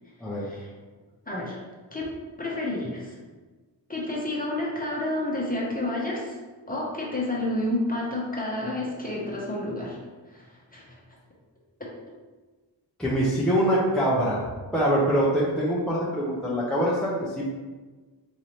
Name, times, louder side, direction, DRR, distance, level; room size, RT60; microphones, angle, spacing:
voice 1, 0.3-0.7 1.3-1.6 1.9-2.1 2.4-3.2 3.9-6.4 6.7-10.0 10.3-11.0, left 1 dB, 20° left, -4 dB, 1.0 m, -30 dB
voice 2, 13.0-14.5 14.7-17.4, equal, ahead, -7 dB, 0.8 m, -24 dB
4.0 x 2.7 x 3.1 m, 1.3 s
cardioid pair, 55°, 45 cm